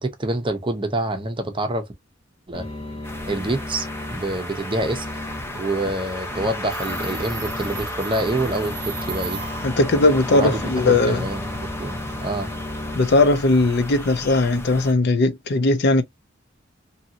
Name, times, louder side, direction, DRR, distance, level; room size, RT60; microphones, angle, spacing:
voice 1, 0.0-1.9 2.5-2.6 3.3-5.1 5.6-9.4 10.3-12.5, right 2 dB, 25° right, 0.7 m, -26 dB
sound 1, 2.5-12.9, left 1 dB, 30° left, 1.0 m, -35 dB
sound 2, 3.0-14.9, left 1 dB, 10° left, 0.6 m, -34 dB
Subway metro underground, 6.7-9.8, right 7 dB, 65° right, 0.5 m, -37 dB
voice 2, 9.6-11.2 13.0-16.0, left 2 dB, 55° left, 0.5 m, -18 dB
2.7 x 2.7 x 2.7 m
head